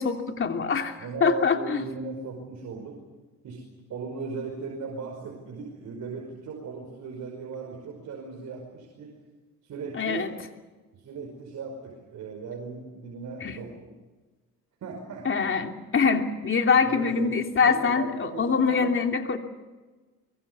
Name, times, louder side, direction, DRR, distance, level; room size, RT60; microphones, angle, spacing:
voice 1, 0.0-1.8 9.9-10.3 13.4-13.6 15.2-19.4, left 5 dB, 45° left, 4 dB, 3.1 m, -24 dB
voice 2, 1.0-3.0 3.4-9.2 9.6-10.3 10.9-13.8 14.8-15.5 16.8-19.0, right 4 dB, 70° right, 1 dB, 5.4 m, -37 dB
24.0 x 23.5 x 7.0 m, 1.3 s
cardioid pair, 90°, 30 cm